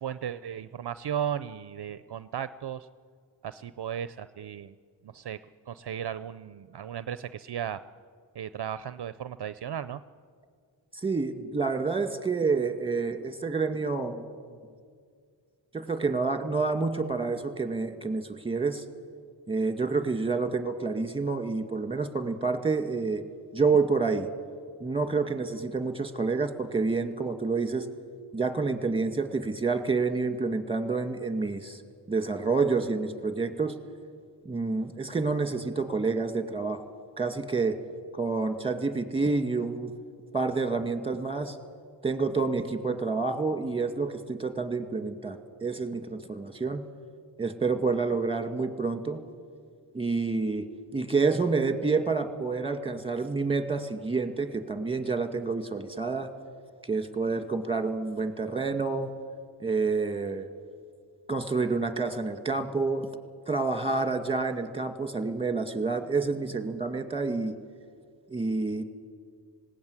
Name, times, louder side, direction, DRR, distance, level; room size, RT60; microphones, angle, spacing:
voice 1, 0.0-2.9 3.4-4.7 5.0-5.4 5.7-7.8 8.3-10.0, right 9 dB, 60° right, 14 dB, 0.6 m, -35 dB
voice 2, 11.0-14.3 15.7-18.8 19.5-23.2 23.5-24.3 24.8-27.9 28.3-31.8 32.1-33.7 34.5-36.9 37.2-37.8 38.1-39.9 40.3-41.6 42.0-46.9 47.4-49.2 49.9-50.7 50.9-56.3 56.8-59.1 59.6-60.5 61.3-63.1 63.5-67.5 68.3-68.8, right 4 dB, 10° right, 8 dB, 2.0 m, -28 dB
19.0 x 17.0 x 9.6 m, 2.1 s
cardioid pair, 55°, 44 cm